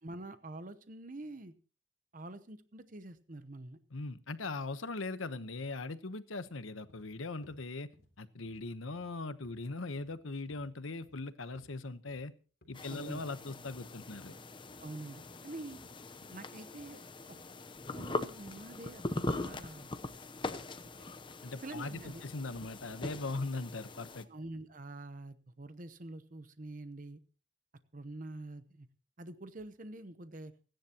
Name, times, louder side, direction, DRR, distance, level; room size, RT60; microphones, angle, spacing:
voice 1, 0.0-1.5 2.1-3.8 12.9-13.2 14.8-15.8 16.3-17.0 17.3-17.4 17.9-19.0 19.3-19.9 21.0-21.1 21.6-22.2 24.2-27.2 27.9-28.9 29.2-30.5, right 2 dB, 40° right, 11 dB, 0.9 m, -46 dB
voice 2, 3.9-7.9 8.2-12.3 12.7-14.3 21.4-24.3, left 3 dB, 85° left, 12 dB, 1.1 m, -40 dB
sound 1, 6.5-6.6 6.9-7.1 7.4-7.6 7.9-8.1 8.5-8.7 8.9-9.1 9.4-9.6 10.0-10.2 10.5-10.7 11.0-11.2 11.6-11.7 12.1-12.2 12.6-12.8 13.1-13.3 13.7-13.8 14.1-14.3 14.7-14.9 15.2-15.3 15.7-15.9 16.2-16.4 16.8-16.9 17.3-17.5, equal, 55° left, 3.5 m, -62 dB
sound 2, 12.7-24.2, left 2 dB, 25° left, 0.8 m, -42 dB
29.5 x 10.5 x 3.0 m, 0.38 s
head